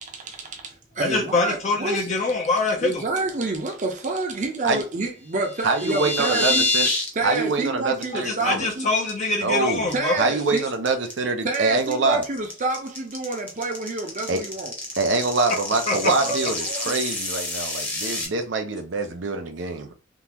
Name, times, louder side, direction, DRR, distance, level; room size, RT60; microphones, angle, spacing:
voice 1, 0.0-2.1 2.8-6.7 7.1-8.9 9.9-10.6 11.4-14.7 16.2-16.9, right 3 dB, 40° right, 0.7 m, -28 dB
voice 2, 1.0-3.0 8.1-10.2 15.9-16.1, left 3 dB, 40° left, 0.6 m, -24 dB
sound 1, 5.4-7.1 7.4-7.7 8.0-8.1 8.5-8.7 9.1-9.6 9.9-18.3, left 2 dB, 10° left, 0.9 m, -28 dB
voice 3, 5.6-6.9 7.2-8.7 9.4-9.9 10.2-12.2 14.3-14.4 15.0-19.9, right 3 dB, 80° right, 0.6 m, -25 dB
3.7 x 2.4 x 2.9 m
head